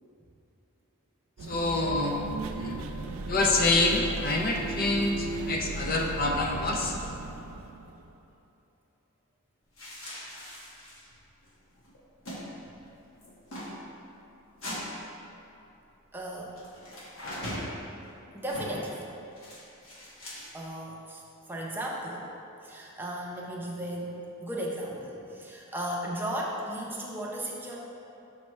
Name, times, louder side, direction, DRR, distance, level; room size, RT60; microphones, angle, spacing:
sound 1, 1.4-8.3, right 3 dB, 65° right, 0.4 m, -36 dB
voice 1, 1.5-2.2 2.5-2.8 3.3-6.9, left 2 dB, 40° left, 1 dB, 0.5 m, -26 dB
voice 2, 2.6-2.9 5.4-5.5 6.8-6.9 16.1-16.6 18.3-19.1 20.5-21.2 21.5-22.3 22.6-27.8, right 1 dB, 10° right, -3 dB, 0.6 m, -36 dB
sound 2, 9.8-11.2 11.4-11.5 11.8-12.4 12.7-12.9 13.2-13.7 14.6-14.8 16.6-17.7 18.5-18.9 19.4-20.7, equal, 60° left, 1.4 m, -40 dB
6.3 x 5.7 x 3.1 m, 2.9 s
head